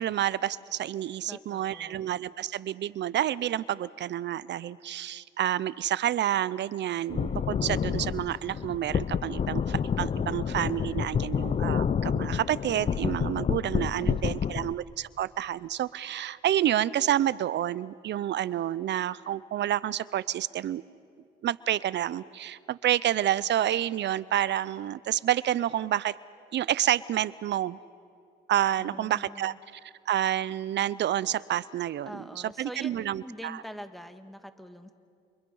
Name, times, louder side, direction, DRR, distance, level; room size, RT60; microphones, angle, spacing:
voice 1, 0.0-20.8 21.4-26.1 26.5-27.8 28.5-29.5 30.1-32.2 32.6-33.6, right 12 dB, 65° right, 18 dB, 0.6 m, -29 dB
voice 2, 1.3-2.1 14.0-14.7 28.8-29.6 32.1-34.9, equal, ahead, 8 dB, 1.7 m, -44 dB
sound 1, 7.1-14.7, left 7 dB, 35° left, 0.6 m, -29 dB
28.5 x 27.0 x 5.5 m, 2.3 s
cardioid pair, 90°, 20 cm